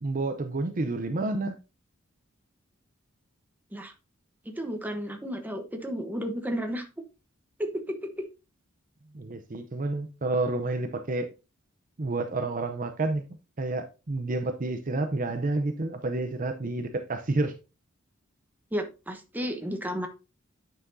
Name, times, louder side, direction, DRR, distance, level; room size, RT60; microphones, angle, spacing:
voice 1, 0.0-1.6 9.1-11.3 12.0-13.2 13.6-17.5, right 2 dB, 40° right, 0.7 m, -29 dB
voice 2, 4.4-6.9 7.6-8.3 18.7-20.1, equal, 10° right, 1.0 m, -33 dB
9.7 x 5.7 x 2.7 m
head